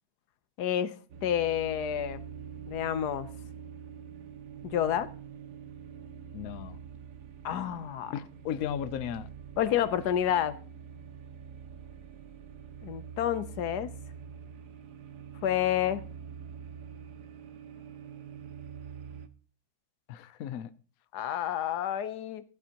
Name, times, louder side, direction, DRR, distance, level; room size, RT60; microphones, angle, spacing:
voice 1, 0.6-2.2 2.7-3.3 4.6-5.1 7.4-8.1 9.6-10.6 12.8-13.9 15.4-16.0 21.1-22.4, left 10 dB, 85° left, 1.3 m, -29 dB
sound 1, 1.1-19.3, right 7 dB, 85° right, 1.4 m, -45 dB
voice 2, 6.3-6.8 8.1-9.3 20.1-20.7, left 9 dB, 70° left, 1.1 m, -35 dB
16.5 x 12.0 x 2.9 m
omnidirectional pair, 1.7 m